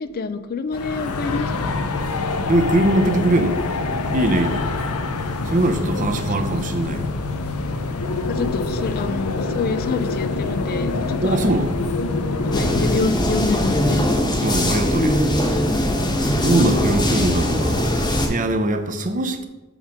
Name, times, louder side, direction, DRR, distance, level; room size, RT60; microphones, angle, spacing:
voice 1, 0.0-1.8 5.9-6.4 8.3-11.6 12.5-14.0, left 4 dB, 45° left, 11 dB, 0.3 m, -27 dB
sound 1, 0.7-13.0, left 3 dB, 90° left, 0.7 m, -25 dB
voice 2, 2.5-3.6 4.1-4.7 5.5-7.1 11.2-11.7 14.4-15.3 16.4-17.9 18.3-19.5, right 1 dB, 35° right, 8 dB, 0.6 m, -21 dB
sound 2, 12.5-18.3, left 1 dB, 20° left, 1.0 m, -20 dB
7.3 x 3.5 x 5.9 m, 1.1 s
head